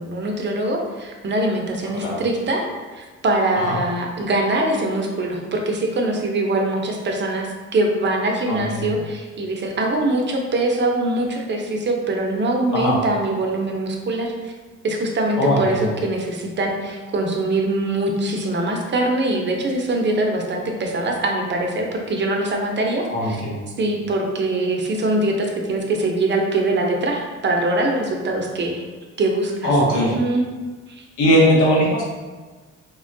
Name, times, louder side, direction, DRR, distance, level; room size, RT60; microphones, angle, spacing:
voice 1, 0.0-2.7 2.9-14.5 14.8-23.4 23.8-28.8 29.2-30.4 30.9-31.0, right 2 dB, 35° right, 1 dB, 0.5 m, -23 dB
voice 2, 8.5-8.8 12.7-13.0 15.4-15.9 23.1-23.6 29.6-30.1 31.2-32.0, equal, 80° left, -3 dB, 1.0 m, -19 dB
3.4 x 2.1 x 2.6 m, 1.4 s
cardioid pair, 90°, 30 cm